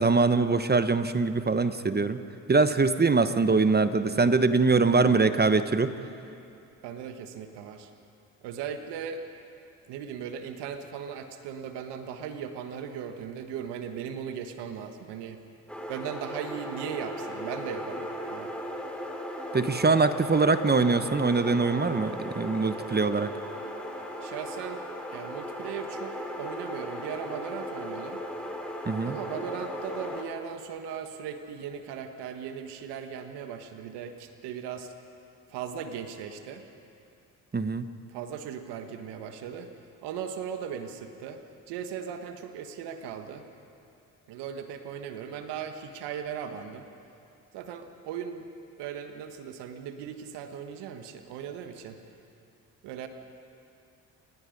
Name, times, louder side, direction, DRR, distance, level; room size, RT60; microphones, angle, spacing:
voice 1, 0.0-2.2 2.5-5.9 19.5-23.3 28.9-29.2 37.5-37.9, right 4 dB, 25° right, 11 dB, 1.0 m, -23 dB
voice 2, 6.8-7.9 8.4-9.2 9.9-15.4 15.9-18.5 24.2-28.2 29.0-34.9 35.5-36.7 38.1-39.7 40.0-41.4 41.7-43.4 44.3-46.8 47.5-48.4 48.8-52.0 52.8-53.1, right 7 dB, 75° right, 7 dB, 1.4 m, -38 dB
sound 1, 15.7-30.2, equal, 5° left, 3.8 m, -37 dB
28.5 x 19.0 x 5.3 m, 2.6 s
hypercardioid pair, 60°, 41 cm